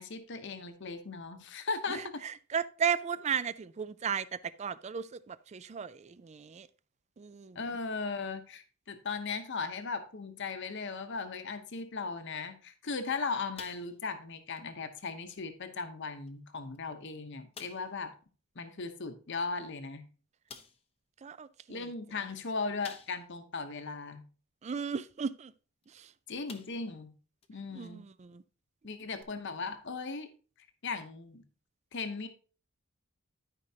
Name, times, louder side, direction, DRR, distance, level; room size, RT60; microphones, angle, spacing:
voice 1, 0.0-2.0 7.5-18.1 18.6-20.0 21.7-24.2 26.3-27.1 27.5-28.0 28.8-30.3 30.8-31.4 31.9-32.3, left 4 dB, 55° left, 0.9 m, -37 dB
voice 2, 1.9-6.7 7.2-7.6 21.2-21.8 24.6-25.5 25.9-26.1 27.7-28.4, right 7 dB, 30° right, 0.4 m, -35 dB
sound 1, 13.6-14.2 14.6-14.7 15.3-15.4 16.3-16.4 16.7-16.8 17.5-18.0 19.6-19.7 20.5-20.9 22.8-23.4 23.9-24.0 25.8-26.0 26.5-27.0 27.4-27.5 29.2-29.3, left 6 dB, 25° left, 0.7 m, -50 dB
12.5 x 5.1 x 2.8 m
head